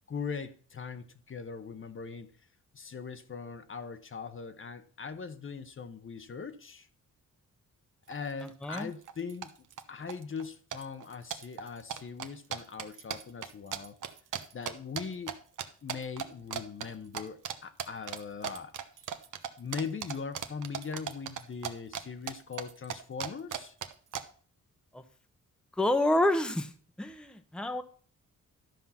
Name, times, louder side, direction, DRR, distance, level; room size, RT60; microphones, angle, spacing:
voice 1, 0.1-2.3 2.7-6.9 8.1-9.5 9.9-14.0 14.5-15.4 15.8-18.8 19.6-23.7, left 5 dB, 40° left, 0.9 m, -40 dB
sound 1, 8.1-8.2 8.4-8.8 9.1-9.8 10.1-10.5 10.7-15.3 15.6-16.3 16.5-16.9 17.1-17.5 17.8-22.0 22.3-24.2, right 9 dB, 75° right, 1.0 m, -37 dB
voice 2, 8.4-8.9 24.9-25.0 25.7-26.7 27.0-27.8, left 1 dB, 5° left, 0.8 m, -28 dB
12.0 x 5.6 x 5.7 m
cardioid pair, 95°, 32 cm